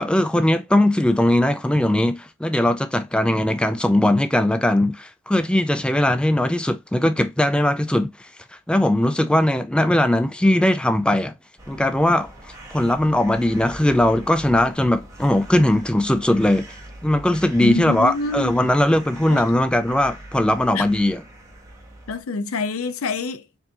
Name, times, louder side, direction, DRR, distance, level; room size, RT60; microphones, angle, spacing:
voice 1, 0.0-8.3 8.7-11.3 11.7-16.7 17.0-21.2, left 1 dB, 5° left, 0.3 m, -19 dB
sound 1, 11.6-22.2, right 1 dB, 15° right, 1.2 m, -42 dB
voice 2, 17.6-18.7 19.3-19.5 20.7-20.9 22.1-23.5, left 3 dB, 85° left, 0.5 m, -26 dB
4.6 x 2.7 x 3.7 m
head